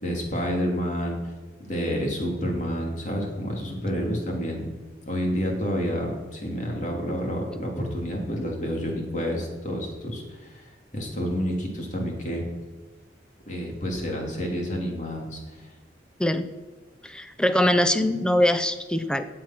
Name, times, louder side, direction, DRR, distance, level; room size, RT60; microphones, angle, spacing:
voice 1, 0.0-1.2 1.6-4.7 5.1-12.4 13.5-15.7, equal, 40° left, 0 dB, 3.0 m, -29 dB
voice 2, 17.0-19.3, left 1 dB, 5° left, 10 dB, 0.6 m, -22 dB
17.5 x 7.7 x 6.1 m, 1.3 s
head